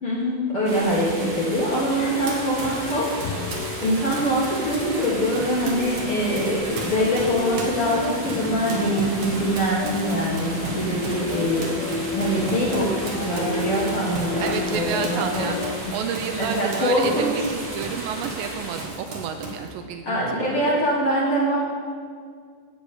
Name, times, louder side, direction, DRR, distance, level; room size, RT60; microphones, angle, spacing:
voice 1, 0.0-15.5 15.8-15.9 16.4-17.3 20.0-21.6, equal, 55° left, -6 dB, 1.6 m, -24 dB
sound 1, 0.6-18.9, right 1 dB, 40° right, 1.5 m, -35 dB
sound 2, 0.8-15.8, left 5 dB, 85° left, 2.4 m, -33 dB
Run, 2.2-6.0 6.3-18.5 18.7-19.7, right 2 dB, 55° right, 2.2 m, -37 dB
voice 2, 5.4-5.9 14.4-20.2 20.5-20.6, right 7 dB, 80° right, 7 dB, 2.1 m, -30 dB
11.5 x 4.6 x 8.2 m, 2.1 s
omnidirectional pair, 4.3 m